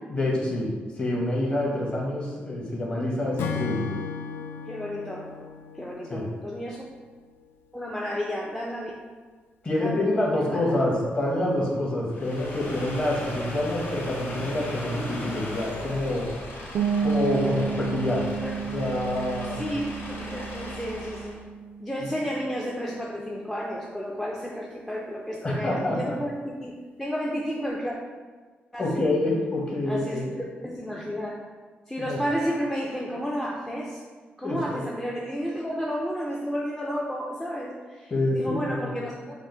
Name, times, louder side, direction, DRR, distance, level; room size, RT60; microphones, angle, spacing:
voice 1, 0.1-0.7 1.0-3.9 6.1-6.3 9.6-16.3 17.0-18.2 18.6-19.6 25.4-26.1 28.8-30.3 32.0-32.2 34.4-34.8 38.1-38.9, left 1 dB, 35° left, -3 dB, 1.1 m, -27 dB
Acoustic guitar / Strum, 3.4-6.8, left 7 dB, 85° left, 0.3 m, -35 dB
voice 2, 4.7-5.4 5.8-6.8 7.7-8.9 9.8-11.1 18.4-18.6 19.5-21.4 21.8-26.3 26.6-27.9 28.7-29.1 29.9-30.2 30.6-31.4 31.9-34.0 34.4-39.4, equal, 10° left, -3 dB, 0.4 m, -32 dB
sound 1, 12.1-21.4, left 1 dB, 65° left, 0.8 m, -37 dB
sound 2, 16.7-22.3, right 6 dB, 85° right, 0.4 m, -31 dB
5.0 x 2.0 x 3.7 m, 1.4 s
cardioid pair, 110°, 4 cm